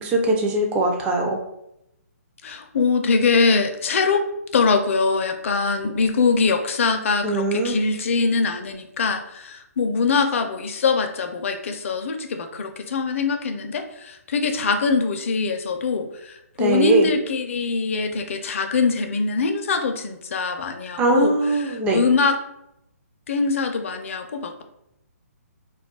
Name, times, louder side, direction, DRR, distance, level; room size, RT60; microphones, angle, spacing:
voice 1, 0.0-1.4 7.2-7.8 16.6-17.1 21.0-22.0, right 2 dB, 15° right, 2 dB, 0.4 m, -21 dB
voice 2, 2.4-4.3 4.5-21.3 21.6-22.4 23.3-24.6, left 4 dB, 55° left, 6 dB, 0.4 m, -23 dB
2.3 x 2.1 x 3.6 m, 0.81 s
hypercardioid pair, 145°, 9 cm